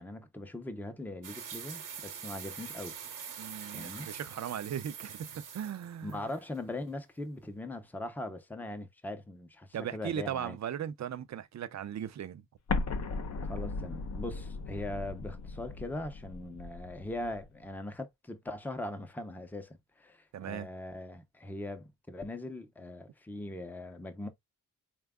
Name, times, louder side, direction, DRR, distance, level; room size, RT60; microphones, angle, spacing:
voice 1, 0.0-3.0 3.7-4.1 6.0-10.6 13.4-24.3, left 1 dB, 5° left, 0.5 m, -40 dB
sound 1, 1.2-6.6, right 7 dB, 75° right, 1.0 m, -44 dB
voice 2, 3.4-6.2 9.7-12.4 20.3-20.7, right 9 dB, 60° right, 0.5 m, -38 dB
Explosion, 12.7-17.5, left 4 dB, 55° left, 0.7 m, -37 dB
4.4 x 2.2 x 3.5 m
wide cardioid pair, 175°, 32 cm